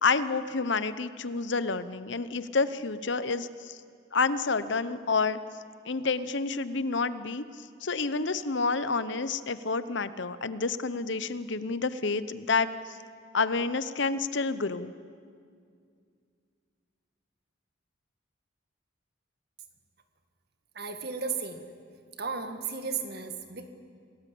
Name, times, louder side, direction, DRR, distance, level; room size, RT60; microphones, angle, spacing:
voice 1, 0.0-3.8 4.1-5.4 5.8-12.7 13.3-14.9, left 4 dB, 65° left, 14 dB, 0.9 m, -29 dB
voice 2, 20.8-21.6 22.2-23.7, right 5 dB, 50° right, 6 dB, 2.0 m, -34 dB
28.0 x 18.5 x 8.6 m, 2.2 s
head